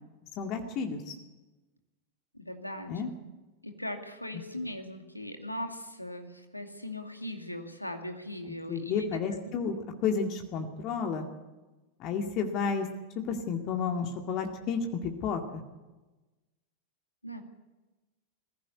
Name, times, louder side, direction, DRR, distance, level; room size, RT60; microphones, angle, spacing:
voice 1, 0.4-1.2 2.9-3.1 8.7-9.8 10.0-11.3 12.0-12.9 13.3-15.6, left 5 dB, 40° left, 4 dB, 2.1 m, -31 dB
voice 2, 2.3-3.1 3.6-9.1 17.2-17.4, left 1 dB, 85° left, 5 dB, 2.3 m, -39 dB
21.0 x 15.5 x 8.4 m, 1.1 s
figure-of-eight pair, 90°, 0 cm